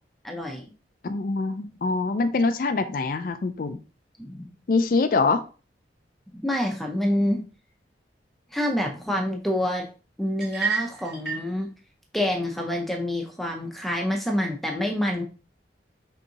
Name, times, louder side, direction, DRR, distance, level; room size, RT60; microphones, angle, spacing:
voice 1, 0.2-0.7 4.2-4.5 6.3-7.5 8.5-9.9 10.2-11.7 12.1-15.2, left 1 dB, ahead, 1 dB, 0.6 m, -27 dB
voice 2, 1.0-3.8 4.7-5.4, left 3 dB, 50° left, 8 dB, 0.3 m, -24 dB
sound 1, 10.4-11.5, right 5 dB, 55° right, 2.1 m, -29 dB
5.3 x 3.5 x 2.8 m, 0.35 s
head